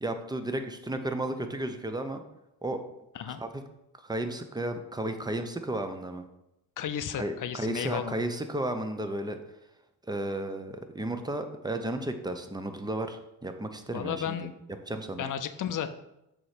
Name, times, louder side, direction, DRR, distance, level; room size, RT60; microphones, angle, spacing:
voice 1, 0.0-2.2 2.6-2.8 3.3-3.6 4.0-6.2 7.2-9.4 10.1-14.4 14.9-15.2, right 1 dB, 10° right, 7 dB, 0.7 m, -33 dB
voice 2, 6.8-8.1 13.9-14.5 15.2-15.9, left 9 dB, 50° left, 10 dB, 0.6 m, -33 dB
6.9 x 3.2 x 5.0 m, 0.86 s
cardioid pair, 75°, 39 cm